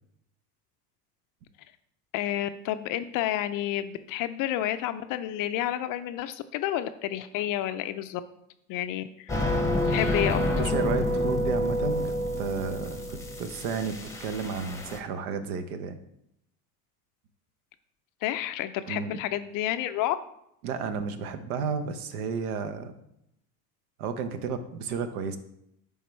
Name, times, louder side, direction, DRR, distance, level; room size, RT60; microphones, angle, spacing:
voice 1, 2.1-8.2 8.7-9.3 9.9-10.4 18.2-20.2, left 12 dB, 45° left, 11 dB, 0.5 m, -30 dB
sound 1, 9.3-15.0, left 1 dB, 5° left, 0.8 m, -28 dB
voice 2, 10.6-16.0 18.9-19.2 20.6-22.9 24.0-25.4, right 5 dB, 70° right, 10 dB, 0.9 m, -32 dB
10.0 x 3.6 x 3.1 m, 0.78 s
hypercardioid pair, 95°, 46 cm